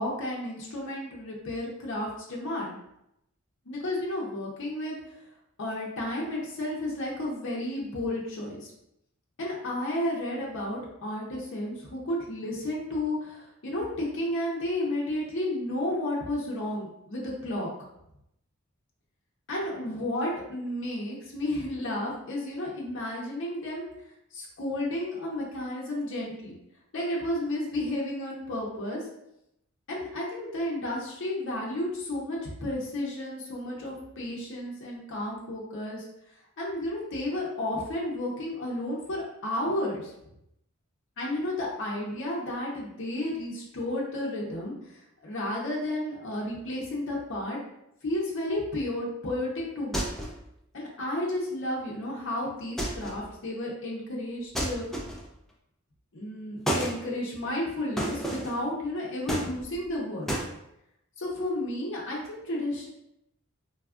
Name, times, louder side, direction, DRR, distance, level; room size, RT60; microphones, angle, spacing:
voice 1, 0.0-2.8 3.7-5.0 5.6-8.7 9.4-17.7 19.5-23.9 24.3-26.5 26.9-29.0 29.9-36.1 36.6-40.1 41.2-47.6 48.0-50.0 50.7-54.9 56.1-60.3 61.2-62.9, left 1 dB, 60° left, -3 dB, 0.6 m, -32 dB
sound 1, 49.9-50.5 52.8-53.3 54.5-55.4 56.7-57.0 58.0-58.6 59.3-59.9 60.3-60.5, right 1 dB, ahead, 0.3 m, -31 dB
3.3 x 2.3 x 2.3 m, 0.82 s
head